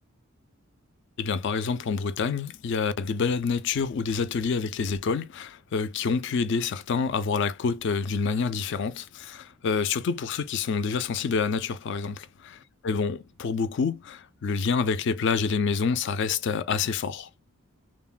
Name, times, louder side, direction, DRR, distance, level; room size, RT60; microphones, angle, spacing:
voice 1, 1.2-12.3 12.8-17.3, left 5 dB, 50° left, 0.3 m, -27 dB
3.2 x 2.1 x 2.3 m
head